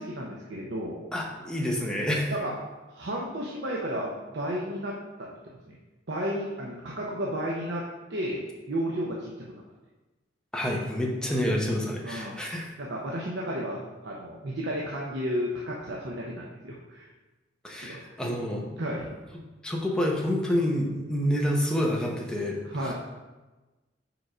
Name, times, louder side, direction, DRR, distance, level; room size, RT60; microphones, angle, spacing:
voice 1, 0.0-1.0 2.3-2.5 2.9-5.3 5.6-5.8 6.1-7.8 8.1-9.3 12.0-12.4 12.8-17.1 17.8-18.2 18.8-19.1 22.6-22.9, equal, 75° right, -3 dB, 0.8 m, -33 dB
voice 2, 1.1-2.3 10.5-12.7 17.6-18.7 19.6-22.6, equal, 5° left, -2 dB, 0.9 m, -28 dB
5.0 x 4.7 x 4.9 m, 1.2 s
head